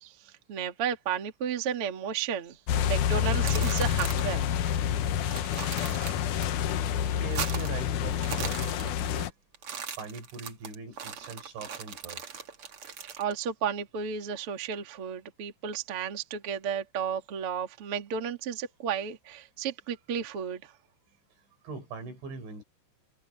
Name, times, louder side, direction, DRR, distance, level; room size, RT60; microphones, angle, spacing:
voice 1, 0.0-4.4 6.2-6.3 7.0-7.1 13.2-20.7, right 7 dB, 40° right, 2.2 m, -33 dB
sound 1, 2.7-9.3, left 9 dB, 80° left, 1.8 m, -28 dB
sound 2, 3.2-4.4 4.7-4.8 5.1-6.5 6.8-7.8 8.1-9.3 9.5-13.3, right 7 dB, 60° right, 1.5 m, -39 dB
voice 2, 7.2-9.3 10.0-12.2 21.6-22.6, right 4 dB, 80° right, 7.6 m, -41 dB
omnidirectional pair, 5.2 m